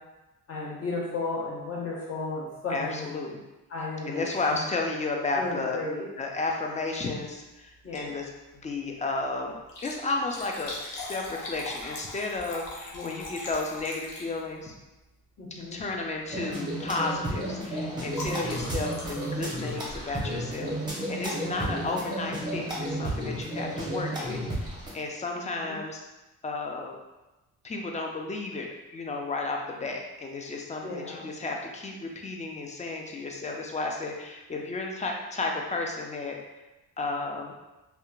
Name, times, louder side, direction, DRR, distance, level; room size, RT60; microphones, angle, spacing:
voice 1, 0.5-3.1 3.7-4.6 5.3-6.0 7.8-8.2 12.9-13.3 15.4-15.8 18.2-18.8 21.3-21.7 25.3-25.8 30.8-31.2, left 3 dB, 40° left, -6 dB, 1.0 m, -35 dB
voice 2, 2.7-3.4 4.1-5.8 6.2-9.6 9.8-14.7 15.6-26.0 26.4-27.0 27.6-36.4 37.0-37.5, left 3 dB, 20° left, 1 dB, 0.4 m, -33 dB
Liquid, 7.8-8.2 8.6-8.7 9.6-14.7 15.7-16.0 16.3-16.6 16.8-20.9 21.9-22.1 22.7-22.8 22.9-23.0, left 2 dB, 65° left, 0.7 m, -41 dB
sound 1, 16.3-24.9, right 1 dB, 10° right, 0.8 m, -32 dB
2.8 x 2.2 x 2.4 m, 1.1 s
cardioid pair, 75°, 36 cm